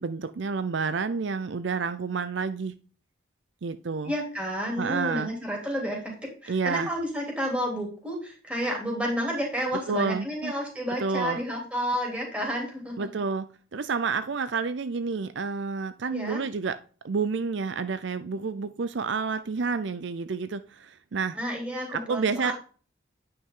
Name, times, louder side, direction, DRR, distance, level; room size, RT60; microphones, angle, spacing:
voice 1, 0.0-2.8 3.6-4.1 4.8-5.3 6.5-6.9 9.9-10.5 11.0-11.4 13.0-16.8 17.0-21.4 21.9-22.5, right 5 dB, 60° right, 0.5 m, -29 dB
voice 2, 4.0-6.0 6.4-13.1 16.1-16.4 21.3-22.5, equal, 5° right, 3.2 m, -30 dB
9.4 x 5.9 x 3.7 m
head